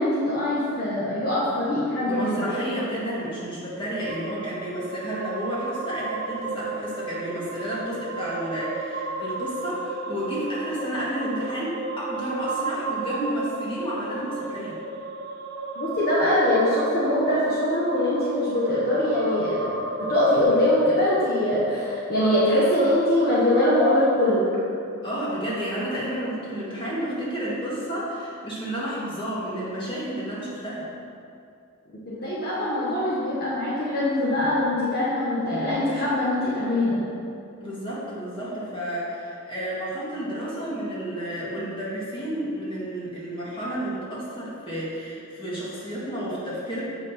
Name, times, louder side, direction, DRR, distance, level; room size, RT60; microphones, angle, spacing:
voice 1, 0.0-2.5 15.7-24.6 32.1-37.1, left 1 dB, 45° left, -8 dB, 1.2 m, -23 dB
voice 2, 2.0-14.8 25.0-30.9 37.6-46.8, equal, 25° left, -7 dB, 2.0 m, -31 dB
sound 1, 4.1-20.4, right 3 dB, 55° right, 0.7 m, -33 dB
8.0 x 5.5 x 4.3 m, 2.5 s
head